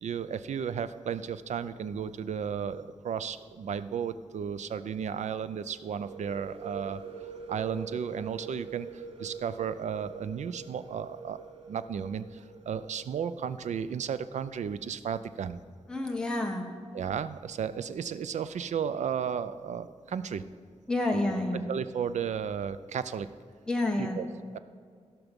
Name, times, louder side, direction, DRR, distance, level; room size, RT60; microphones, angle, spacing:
voice 1, 0.0-7.0 7.5-8.9 9.2-11.4 11.7-15.6 16.9-20.4 21.7-23.3 24.0-24.3 24.5-24.6, right 7 dB, 80° right, 13 dB, 0.5 m, -34 dB
sound 1, 5.9-13.6, right 5 dB, 50° right, 0.9 m, -45 dB
voice 2, 15.9-16.6 20.9-21.6 23.7-24.2, left 2 dB, 5° left, 1 dB, 1.0 m, -29 dB
16.0 x 6.0 x 5.2 m, 2.1 s
wide cardioid pair, 130°, 12 cm